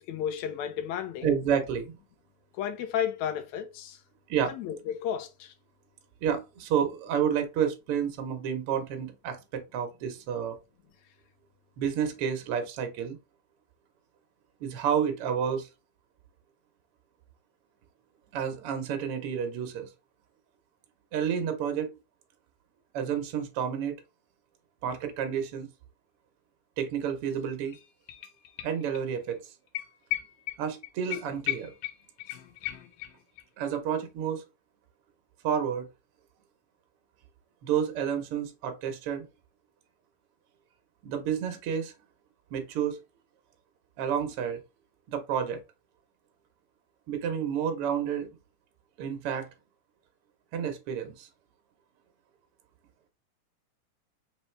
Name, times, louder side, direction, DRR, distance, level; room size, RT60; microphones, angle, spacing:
voice 1, 0.0-1.3 2.5-4.0 4.5-5.5, left 9 dB, 70° left, 1.8 m, -33 dB
voice 2, 1.2-2.0 4.3-4.5 6.2-10.6 11.8-13.2 14.6-15.7 18.3-19.9 21.1-21.9 22.9-24.0 24.8-25.7 26.8-27.8 28.6-29.4 30.6-31.7 33.6-34.4 35.4-35.9 37.6-39.3 41.0-41.9 42.5-43.0 44.0-44.6 45.1-45.6 47.1-48.3 49.0-49.5 50.5-51.3, right 8 dB, 85° right, 1.2 m, -30 dB
sound 1, 27.3-27.4 27.7-29.0 29.3-29.4 29.8-33.4 33.7-33.8, left 16 dB, 90° left, 2.4 m, -37 dB
5.3 x 3.2 x 3.2 m
omnidirectional pair, 3.8 m